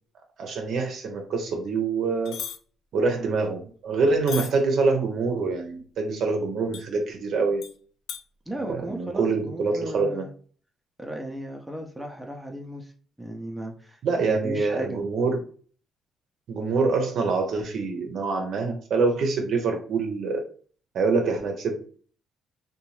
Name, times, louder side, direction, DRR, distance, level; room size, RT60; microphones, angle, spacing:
voice 1, 0.4-2.4 2.9-7.6 8.6-10.2 14.0-15.4 16.5-20.4 20.9-21.8, right 4 dB, 70° right, 3 dB, 0.6 m, -25 dB
sound 1, 2.3-2.6 4.3-4.5 6.7-6.8 7.6-7.7 8.1-8.2, left 9 dB, 85° left, 0.4 m, -34 dB
voice 2, 8.5-10.3 11.0-12.9 13.2-15.0, right 1 dB, 10° right, 1 dB, 0.5 m, -36 dB
2.6 x 2.2 x 3.0 m, 0.43 s
cardioid pair, 90°, 0 cm